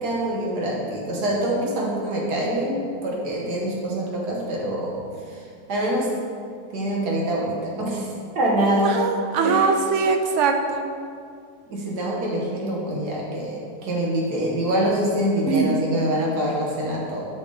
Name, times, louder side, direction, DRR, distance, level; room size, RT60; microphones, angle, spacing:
voice 1, 0.0-5.0 5.7-6.1 6.7-8.1 8.3-8.9 9.4-9.6 11.7-17.3, right 1 dB, 85° right, -3 dB, 1.8 m, -25 dB
voice 2, 8.8-10.8 15.5-15.9, right 5 dB, 65° right, 5 dB, 0.7 m, -22 dB
6.6 x 5.9 x 3.9 m, 2.3 s
omnidirectional pair, 1.7 m